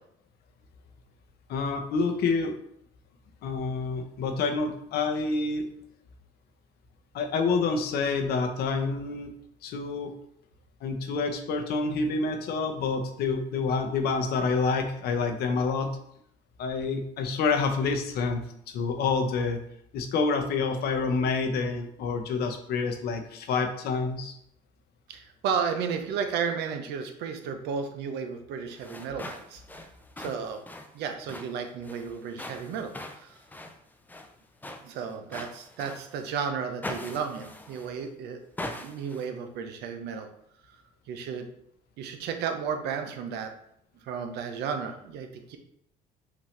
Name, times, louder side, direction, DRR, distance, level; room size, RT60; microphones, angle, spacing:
voice 1, 1.5-2.5 3.4-5.7 7.1-9.3 9.6-10.1 10.8-15.9 16.6-19.6 19.9-24.4, left 4 dB, 70° left, 5 dB, 0.7 m, -28 dB
voice 2, 25.1-29.6 30.2-30.6 30.9-33.4 34.8-38.4 38.8-40.3 41.1-41.5 42.0-43.5 44.0-45.6, right 6 dB, 80° right, 6 dB, 0.7 m, -33 dB
sound 1, 28.7-36.3 36.8-38.1 38.6-39.3, left 1 dB, 10° left, 0.5 m, -42 dB
5.9 x 2.7 x 3.2 m, 0.72 s
cardioid pair, 110°, 17 cm